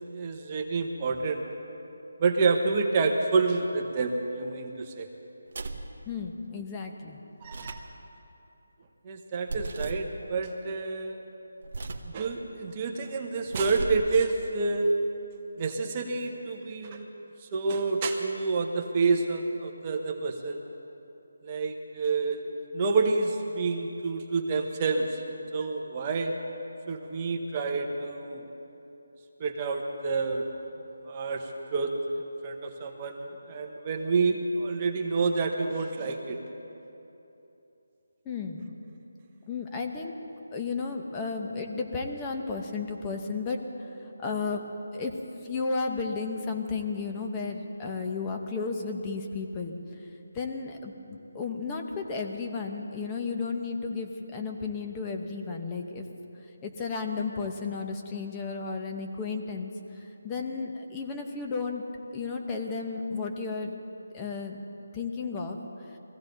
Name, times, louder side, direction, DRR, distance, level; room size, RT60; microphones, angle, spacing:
voice 1, 0.1-1.4 2.2-5.1 7.4-7.8 9.0-11.2 12.1-14.9 15.6-17.1 17.4-20.6 21.4-22.4 22.7-25.2 25.5-26.3 26.9-28.4 29.4-30.4 31.1-31.9 32.4-36.4, right 4 dB, 25° right, 2 dB, 1.0 m, -28 dB
sound 1, 5.5-5.9 7.4-7.9 9.5-10.1 11.6-12.1 13.4-14.1, right 3 dB, 50° right, 1.1 m, -36 dB
voice 2, 6.1-7.2 38.2-38.7 39.5-40.1 40.5-43.6 44.2-44.6 44.9-45.1 45.4-49.8 50.3-56.0 56.6-61.8 62.1-63.8 64.1-64.6 64.9-65.6, left 4 dB, 15° left, 2 dB, 0.9 m, -33 dB
22.0 x 15.5 x 4.0 m, 3.0 s
figure-of-eight pair, 170°, 0 cm